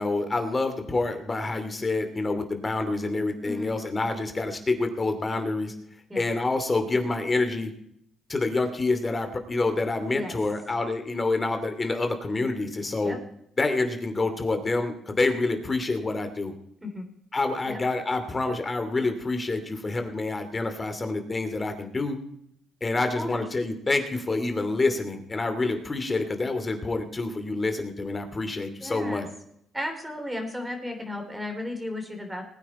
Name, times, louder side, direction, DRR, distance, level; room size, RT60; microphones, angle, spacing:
voice 1, 0.0-5.7 6.1-7.7 8.3-13.2 13.6-16.5 17.3-22.2 22.8-29.3, left 3 dB, 25° left, 7 dB, 2.7 m, -27 dB
voice 2, 23.1-23.4 28.8-29.3 29.7-32.4, left 1 dB, 10° right, 4 dB, 3.5 m, -34 dB
20.5 x 9.5 x 4.3 m, 0.72 s
cardioid pair, 90°, 0 cm